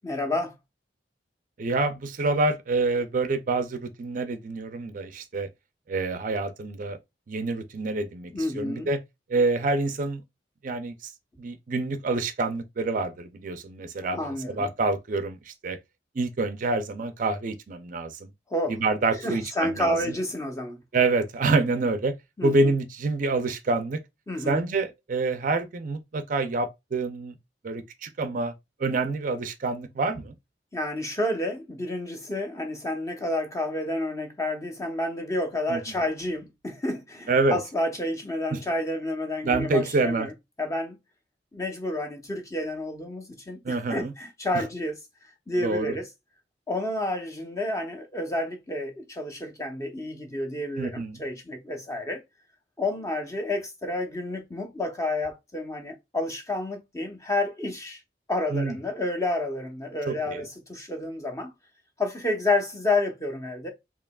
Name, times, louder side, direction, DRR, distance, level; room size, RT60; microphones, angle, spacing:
voice 1, 0.0-0.5 8.3-8.9 14.1-14.7 18.5-18.8 19.1-20.8 22.4-22.7 24.3-24.6 30.7-40.3 40.6-41.0 41.5-44.9 45.5-46.1 46.7-52.2 52.8-58.0 58.3-61.5 62.0-63.7, left 1 dB, 15° left, 0.8 m, -30 dB
voice 2, 1.6-5.5 5.9-7.0 7.3-9.0 9.3-10.2 10.6-11.1 11.4-15.8 16.2-18.3 18.7-20.1 20.9-22.1 22.4-24.0 24.5-27.3 27.6-28.5 28.8-30.3 35.7-35.8 37.3-37.6 38.5-38.6 39.4-40.3 43.6-44.1 45.6-46.0 50.8-51.2 58.5-58.8 60.1-60.4, right 3 dB, 45° right, 0.4 m, -27 dB
4.7 x 2.9 x 2.3 m
head